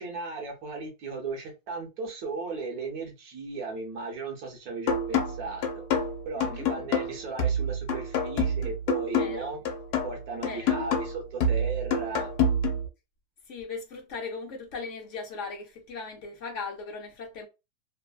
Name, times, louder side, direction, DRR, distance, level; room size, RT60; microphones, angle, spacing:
voice 1, 0.0-5.8 6.2-9.6 10.0-12.3, right 4 dB, 70° right, 1.3 m, -36 dB
sound 1, 4.9-12.9, left 2 dB, 80° left, 1.2 m, -28 dB
voice 2, 6.4-6.7 9.2-9.5 10.4-10.9 13.5-17.5, left 4 dB, 60° left, 0.9 m, -38 dB
3.2 x 2.0 x 2.2 m
omnidirectional pair, 1.7 m